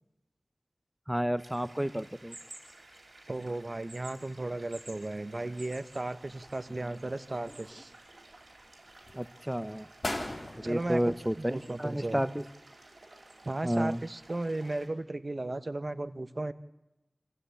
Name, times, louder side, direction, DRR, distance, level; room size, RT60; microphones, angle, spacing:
voice 1, 1.1-2.3 9.1-9.8 10.6-12.4 13.6-14.0, equal, 10° right, 12 dB, 0.8 m, -31 dB
sound 1, 1.4-14.9, right 2 dB, 65° right, 5.0 m, -53 dB
voice 2, 3.3-7.9 10.6-11.0 11.4-12.2 13.4-16.5, right 2 dB, 50° right, 12 dB, 1.0 m, -35 dB
sound 2, 6.3-7.1 7.5-8.3 8.9-9.2 9.7-9.8 10.0-11.9 12.2-12.3, left 1 dB, 45° left, 3.5 m, -40 dB
27.5 x 15.0 x 8.5 m, 0.93 s
wide cardioid pair, 55°, 0 cm